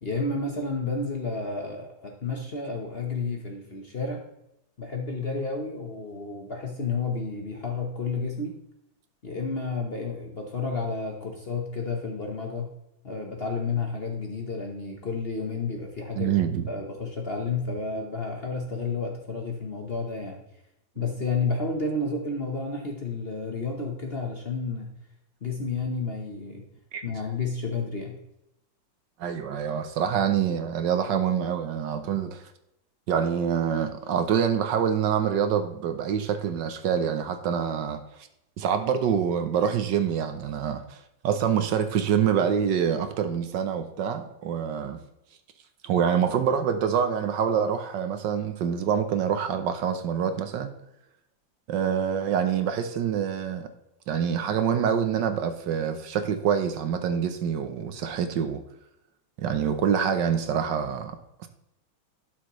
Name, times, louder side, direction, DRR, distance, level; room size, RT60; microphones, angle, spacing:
voice 1, 0.0-4.2 4.8-8.6 9.2-12.7 13.0-16.3 16.7-20.4 21.0-24.9 25.4-26.6 27.0-28.2, left 4 dB, 40° left, 1 dB, 1.0 m, -31 dB
voice 2, 16.2-16.7 26.9-27.0 29.2-32.4 33.1-38.0 38.6-45.0 45.8-50.7 51.7-53.7 54.1-58.6 59.4-61.5, right 8 dB, 70° right, 8 dB, 1.3 m, -26 dB
11.5 x 6.4 x 3.1 m, 0.84 s
omnidirectional pair, 2.1 m